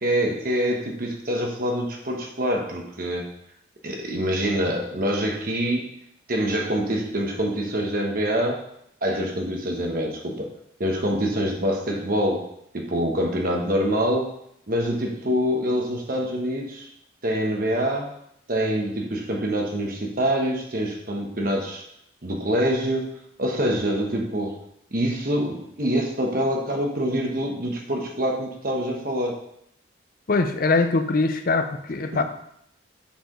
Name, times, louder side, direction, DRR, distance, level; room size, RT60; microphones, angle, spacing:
voice 1, 0.0-3.3 3.8-5.9 6.3-8.6 9.0-10.5 10.8-12.4 12.7-14.3 14.7-16.9 17.2-18.1 18.5-21.8 22.2-24.6 24.9-29.4 32.1-32.2, equal, 45° right, 1 dB, 1.1 m, -25 dB
voice 2, 30.3-32.2, left 3 dB, 45° left, 8 dB, 0.5 m, -22 dB
6.9 x 4.9 x 3.8 m, 0.73 s
head